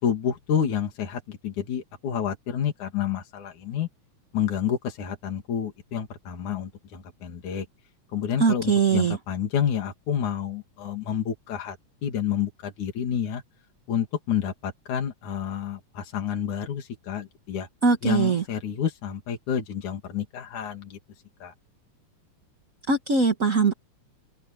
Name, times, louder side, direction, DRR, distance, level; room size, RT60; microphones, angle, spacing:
voice 1, 0.0-3.9 4.3-7.7 8.1-11.8 12.0-13.4 13.9-17.7 18.0-21.0 21.4-21.5, left 8 dB, 70° left, 4.0 m, -29 dB
voice 2, 8.4-9.2 17.8-18.4 22.9-23.7, right 5 dB, 35° right, 1.4 m, -21 dB
open air
omnidirectional pair, 3.6 m